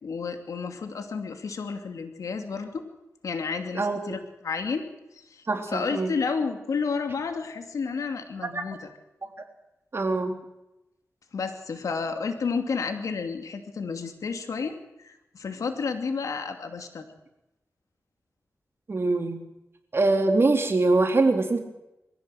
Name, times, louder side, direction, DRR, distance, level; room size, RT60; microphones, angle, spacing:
voice 1, 0.0-2.8 3.2-4.9 5.1-8.9 11.3-17.1, left 5 dB, 85° left, 6 dB, 2.7 m, -31 dB
voice 2, 5.5-6.1 8.5-8.6 9.2-9.3 9.9-10.4 18.9-19.4 19.9-21.6, right 3 dB, 45° right, 4 dB, 3.6 m, -23 dB
23.0 x 15.5 x 7.9 m, 0.92 s
wide cardioid pair, 70°, 6 cm